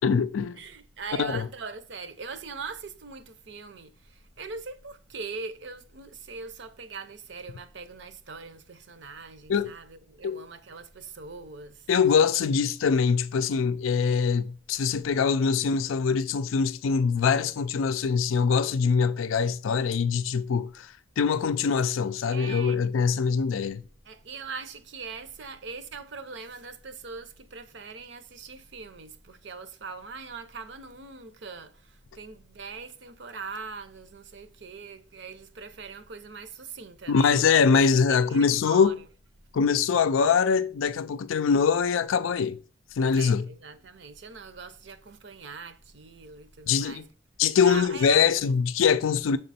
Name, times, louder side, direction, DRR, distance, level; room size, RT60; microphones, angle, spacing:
voice 1, 0.0-0.6 1.2-1.5 9.5-9.7 10.2-10.4 11.9-23.8 37.1-39.0 39.5-42.6 43.0-43.5 46.7-47.0 47.4-49.4, left 6 dB, 85° left, 0.4 m, -23 dB
voice 2, 0.6-11.9 22.3-22.8 24.0-37.3 38.1-39.0 43.1-47.0 47.6-48.3, right 4 dB, 60° right, 0.6 m, -41 dB
6.7 x 3.6 x 4.1 m
head